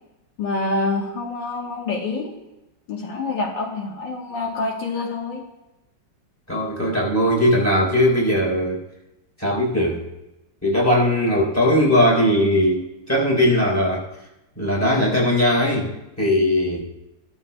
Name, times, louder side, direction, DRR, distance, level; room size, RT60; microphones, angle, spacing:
voice 1, 0.4-2.3 2.9-5.4, left 3 dB, 75° left, -1 dB, 1.9 m, -26 dB
voice 2, 6.5-8.8 9.4-10.0 10.6-14.1 14.6-15.9 16.2-16.8, left 1 dB, 10° left, -3 dB, 3.5 m, -19 dB
14.5 x 12.5 x 2.2 m, 0.96 s
omnidirectional pair, 2.0 m